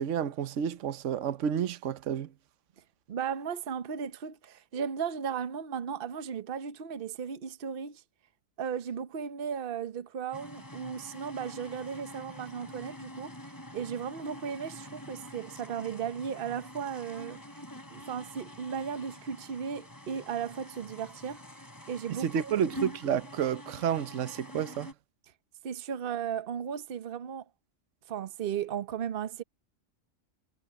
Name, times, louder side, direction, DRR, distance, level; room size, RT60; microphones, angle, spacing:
voice 1, 0.0-2.3 22.1-24.9, right 8 dB, 70° right, 1.1 m, -30 dB
voice 2, 3.1-8.0 8.6-13.4 13.7-17.4 17.9-21.4 21.9-22.5 25.6-27.5 28.1-29.4, right 7 dB, 45° right, 1.0 m, -36 dB
sound 1, 10.3-24.9, equal, 15° left, 4.6 m, -46 dB
omnidirectional pair, 1.4 m